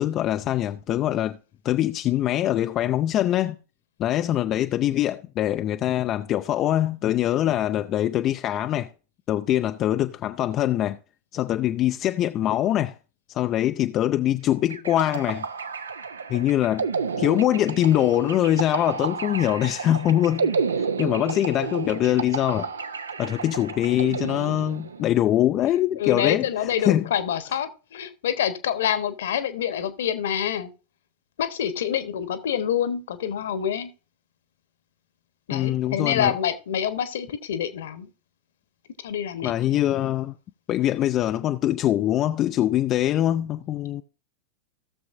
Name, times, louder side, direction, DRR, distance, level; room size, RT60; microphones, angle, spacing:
voice 1, 0.0-1.4 1.6-3.6 4.0-8.9 9.3-11.0 11.3-13.0 13.3-15.5 16.3-16.9 17.2-20.6 21.0-22.7 23.2-27.0 35.5-36.3 39.4-40.3 40.7-44.0, left 12 dB, 35° left, 0.4 m, -23 dB
sound 1, 14.7-25.1, right 5 dB, 70° right, 0.7 m, -31 dB
voice 2, 26.0-30.7 31.4-33.9 35.5-38.1 39.0-40.1, left 9 dB, 60° left, 1.1 m, -27 dB
17.0 x 6.9 x 2.6 m
figure-of-eight pair, 90°, 0 cm